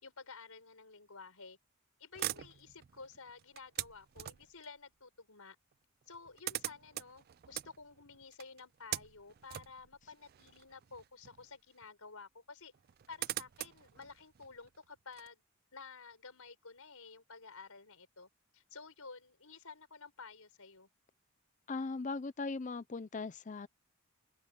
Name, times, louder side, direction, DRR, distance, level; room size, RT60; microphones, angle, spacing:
voice 1, 0.0-1.6 2.0-5.6 6.1-12.7 13.1-15.4 15.7-20.9, left 4 dB, 85° left, 5.0 m, -52 dB
sound 1, 2.1-4.7 5.7-5.8 6.0-11.5 11.8-11.9 12.7-15.3, right 14 dB, 45° right, 0.3 m, -43 dB
voice 2, 21.7-23.7, left 3 dB, 35° left, 0.5 m, -39 dB
head